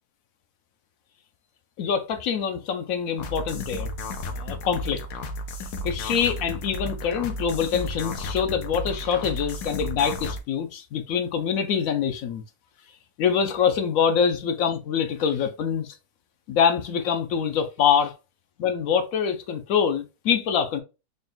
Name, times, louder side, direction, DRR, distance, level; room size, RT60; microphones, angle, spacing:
voice 1, 1.8-3.9 4.3-5.0 5.8-12.4 13.2-15.9 16.5-18.1 18.6-20.8, left 7 dB, 70° left, 0.9 m, -25 dB
sound 1, 3.2-10.4, left 1 dB, 85° left, 1.2 m, -33 dB
3.9 x 2.2 x 3.7 m
omnidirectional pair, 1.6 m